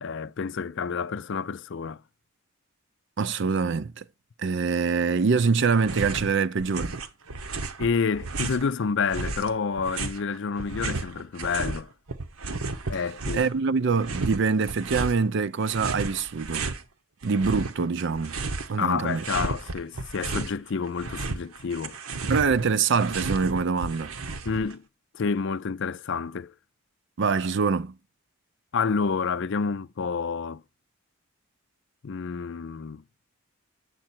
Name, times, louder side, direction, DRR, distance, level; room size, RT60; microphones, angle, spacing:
voice 1, 0.0-2.0 7.8-11.9 12.9-13.4 18.8-22.0 24.4-24.8 25.1-26.5 28.7-30.6 32.0-33.0, left 5 dB, 60° left, 0.5 m, -29 dB
voice 2, 3.2-4.0 4.4-7.0 13.3-16.7 17.2-18.4 18.7-19.2 22.3-24.1 27.2-27.9, right 5 dB, 55° right, 0.5 m, -24 dB
sound 1, 5.8-6.3 6.6-8.7 9.1-11.8 12.1-13.6 14.0-15.2 15.6-16.8 17.2-18.8 19.1-20.6 20.9-24.7, right 3 dB, 80° right, 1.0 m, -33 dB
8.4 x 7.7 x 4.3 m
head